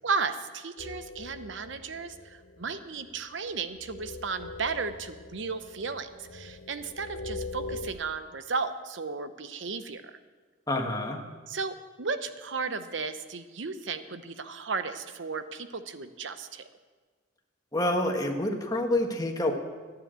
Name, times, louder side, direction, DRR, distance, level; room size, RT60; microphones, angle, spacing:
voice 1, 0.0-10.2 11.5-16.6, right 4 dB, 70° right, 10 dB, 0.8 m, -34 dB
sound 1, 0.8-7.9, left 2 dB, 80° left, 0.8 m, -42 dB
voice 2, 10.7-11.2 17.7-19.5, left 1 dB, 20° left, 2 dB, 1.5 m, -27 dB
13.0 x 9.7 x 7.6 m, 1.4 s
head